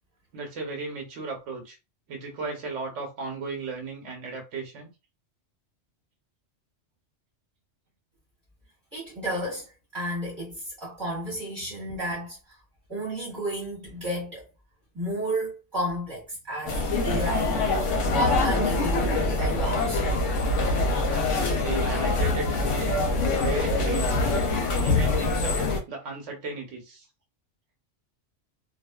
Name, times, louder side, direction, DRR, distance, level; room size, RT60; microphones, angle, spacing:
voice 1, 0.3-1.8 2.1-4.9 21.1-23.0 23.4-24.3 24.8-27.1, right 3 dB, 80° right, 1.1 m, -36 dB
voice 2, 8.9-12.6 12.9-14.4 14.9-17.7 18.2-20.0, right 1 dB, 20° right, 1.1 m, -32 dB
sound 1, 16.7-25.8, left 2 dB, 85° left, 1.0 m, -24 dB
2.4 x 2.3 x 2.2 m
omnidirectional pair, 1.2 m